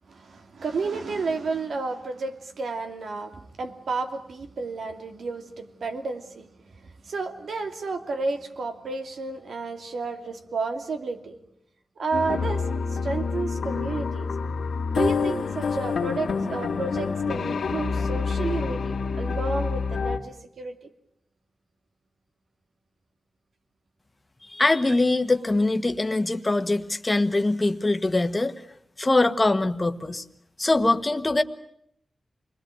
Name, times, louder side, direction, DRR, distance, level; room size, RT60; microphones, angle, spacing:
voice 1, 0.1-3.3 3.6-11.4 12.0-14.3 14.9-20.8, right 3 dB, 85° right, 6 dB, 2.8 m, -31 dB
sound 1, 12.1-20.2, left 5 dB, 90° left, 2.4 m, -27 dB
voice 2, 24.5-28.5 29.0-30.2 30.6-31.4, left 2 dB, 20° left, 9 dB, 1.4 m, -23 dB
28.5 x 21.5 x 9.2 m, 0.73 s
wide cardioid pair, 135°, 0 cm